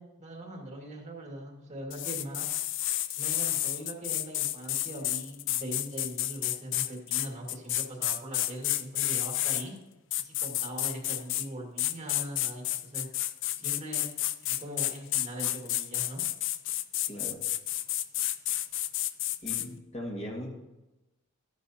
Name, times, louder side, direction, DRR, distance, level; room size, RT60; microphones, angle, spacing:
voice 1, 0.0-2.5 3.2-9.8 10.2-13.1 13.6-14.0 14.4-16.2, right 1 dB, 30° right, 0 dB, 1.9 m, -41 dB
sound 1, 1.9-9.6 10.1-11.5 11.8-19.7, left 14 dB, 60° left, 0.5 m, -31 dB
voice 2, 17.1-17.4 19.4-20.5, left 1 dB, 30° left, -1 dB, 1.9 m, -39 dB
14.0 x 11.0 x 2.8 m, 1.0 s
head